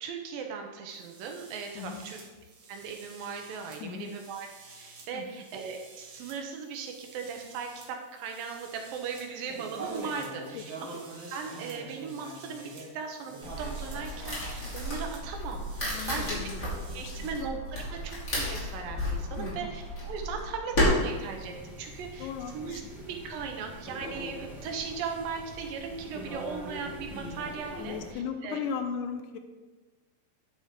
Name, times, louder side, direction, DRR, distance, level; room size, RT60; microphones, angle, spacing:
voice 1, 0.0-2.2 2.7-4.5 4.8-10.7 11.3-16.4 16.9-28.6, right 6 dB, 85° right, 3 dB, 2.8 m, -38 dB
sound 1, 0.9-17.3, right 2 dB, 55° right, 1.4 m, -47 dB
sound 2, 13.4-20.9, left 1 dB, 25° left, 2.9 m, -33 dB
voice 2, 15.9-17.3 19.4-19.7 22.2-22.8 27.8-29.4, left 7 dB, 80° left, 7 dB, 2.1 m, -37 dB
sound 3, 20.9-28.1, left 1 dB, ahead, 0.7 m, -43 dB
9.6 x 6.9 x 3.7 m, 1.3 s
omnidirectional pair, 3.9 m